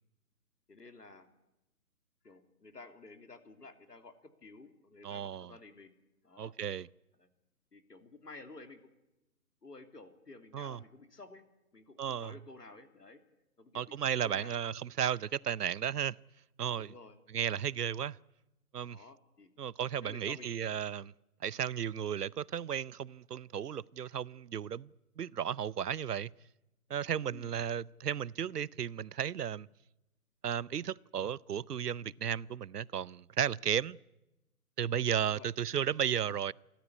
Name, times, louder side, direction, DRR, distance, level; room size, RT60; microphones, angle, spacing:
voice 1, 0.7-1.3 2.2-5.9 6.2-6.5 7.2-7.3 7.7-8.8 9.6-11.4 11.7-13.2 13.6-14.6 16.7-17.2 18.8-19.5 20.0-20.7 21.9-22.1 27.3-27.6 35.3-35.5, left 3 dB, 85° left, 3.2 m, -53 dB
voice 2, 5.0-5.5 6.4-6.9 10.5-10.8 12.0-12.3 13.7-16.1 16.6-16.9 17.3-18.2 18.7-19.0 19.6-21.1 21.4-24.9 25.2-26.3 26.9-29.7 30.4-34.0 34.8-36.5, right 8 dB, 80° right, 0.7 m, -34 dB
28.5 x 13.5 x 9.7 m
figure-of-eight pair, 150°, 46 cm